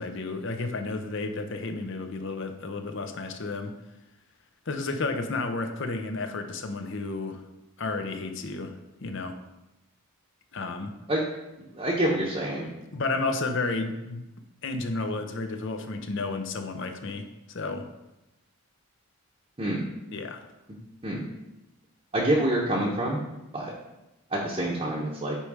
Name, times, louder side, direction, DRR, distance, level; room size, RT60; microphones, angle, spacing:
voice 1, 0.0-3.7 4.7-7.4 7.8-8.7 9.0-9.4 10.5-10.9 12.9-14.2 14.6-17.9 20.1-20.4, left 3 dB, 55° left, 6 dB, 0.7 m, -32 dB
voice 2, 11.7-12.7 19.6-19.8 21.0-21.2 22.1-23.2 23.5-23.7 24.3-25.4, right 1 dB, 25° right, -5 dB, 0.9 m, -26 dB
8.5 x 3.2 x 4.8 m, 0.95 s
head